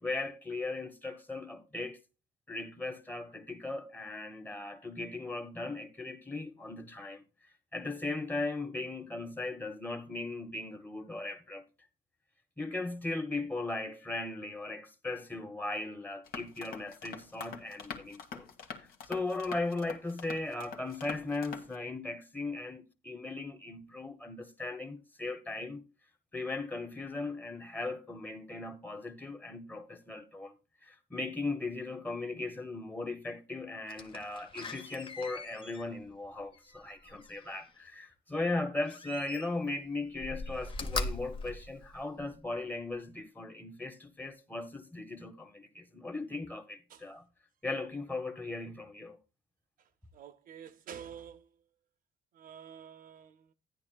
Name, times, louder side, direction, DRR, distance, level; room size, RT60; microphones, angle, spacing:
voice 1, 0.0-2.0 2.5-7.2 7.7-11.6 12.6-18.5 19.1-25.8 26.3-30.5 30.8-47.2 47.6-49.2, left 2 dB, 10° left, 1.2 m, -38 dB
sound 1, 16.2-21.7, left 6 dB, 60° left, 1.4 m, -45 dB
Slam, 33.9-37.7 38.8-39.8 40.1-42.4 42.9-43.0, left 2 dB, 30° left, 0.8 m, -41 dB
voice 2, 50.1-51.5 52.3-53.5, right 8 dB, 55° right, 0.6 m, -48 dB
13.0 x 9.8 x 2.3 m
cardioid pair, 110°, 17 cm